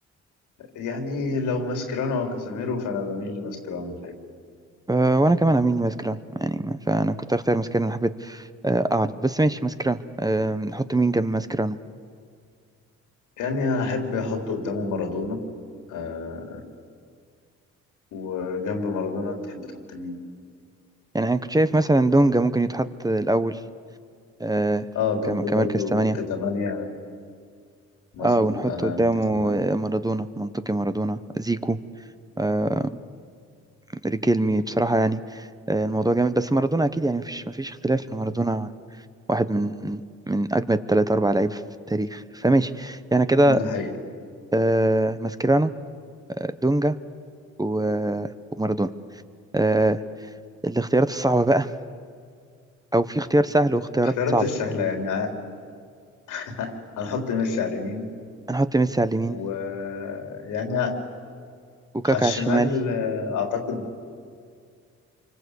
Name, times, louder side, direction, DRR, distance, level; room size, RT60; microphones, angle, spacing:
voice 1, 0.6-4.1 13.4-15.4 15.9-16.6 18.1-20.2 24.9-26.9 28.1-29.5 43.5-43.9 54.2-55.3 56.3-58.1 59.3-61.0 62.0-63.9, left 4 dB, 90° left, 3 dB, 3.9 m, -28 dB
voice 2, 4.9-11.8 21.1-23.6 24.4-24.8 25.3-26.2 28.2-31.8 32.4-32.9 34.0-38.7 39.3-40.0 40.3-41.6 41.9-43.6 44.5-45.7 46.4-47.0 47.6-48.3 48.6-48.9 49.5-50.0 50.6-51.7 52.9-54.4 58.5-59.4 61.9-62.7, right 2 dB, 10° right, 11 dB, 1.1 m, -23 dB
27.5 x 24.5 x 8.4 m, 2.2 s
cardioid pair, 75°, 30 cm